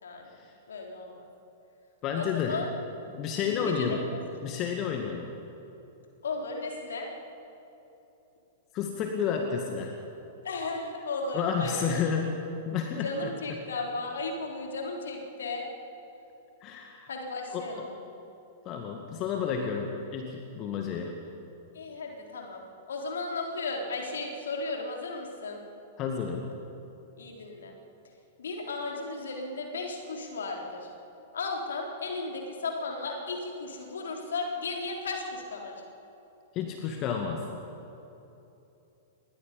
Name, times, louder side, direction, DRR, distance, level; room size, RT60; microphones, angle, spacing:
voice 1, 0.0-0.4 0.7-1.2 2.1-2.7 3.4-4.0 6.2-7.1 10.4-12.0 13.0-15.6 17.1-18.0 21.7-22.6 22.9-25.6 27.2-27.7 28.4-30.9 31.3-35.7, left 3 dB, 65° left, 1 dB, 3.8 m, -35 dB
voice 2, 2.0-2.6 3.1-4.1 4.4-5.3 8.7-10.0 11.3-13.3 16.6-17.1 17.5-17.8 18.7-21.2 26.0-26.5 36.5-37.4, left 6 dB, 35° left, 3 dB, 2.0 m, -31 dB
27.5 x 21.5 x 5.4 m, 2.9 s
figure-of-eight pair, 100°, 0 cm